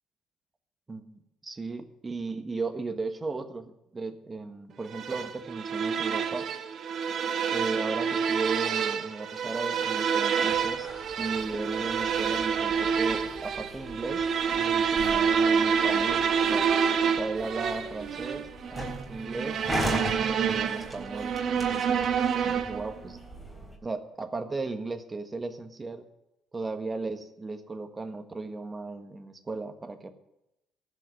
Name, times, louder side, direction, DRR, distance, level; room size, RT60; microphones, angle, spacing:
voice 1, 0.9-6.4 7.5-10.9 11.2-16.7 17.1-18.4 19.1-22.1 22.4-23.2 23.8-26.0 26.5-30.1, right 3 dB, 25° right, 8 dB, 1.4 m, -36 dB
sound 1, 4.9-22.9, right 7 dB, 60° right, 1.2 m, -28 dB
sound 2, 10.5-23.8, equal, 5° left, 3.8 m, -40 dB
15.0 x 5.8 x 9.4 m, 0.89 s
cardioid pair, 85°, 0 cm